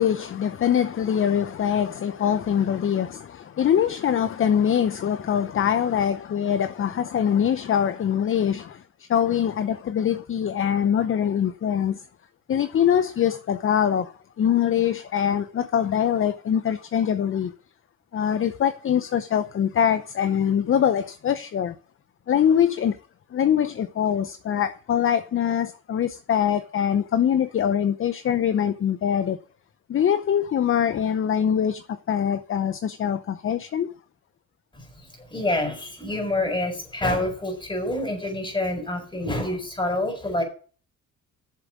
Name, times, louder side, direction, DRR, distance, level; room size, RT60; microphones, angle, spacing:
voice 1, 0.0-12.0 12.5-17.5 18.1-21.7 22.3-23.0 23.3-29.4 29.9-33.9, left 9 dB, 45° left, 0.7 m, -23 dB
voice 2, 34.7-40.4, left 1 dB, 15° left, 4.5 m, -27 dB
7.5 x 7.3 x 7.1 m
cardioid pair, 90°, 30 cm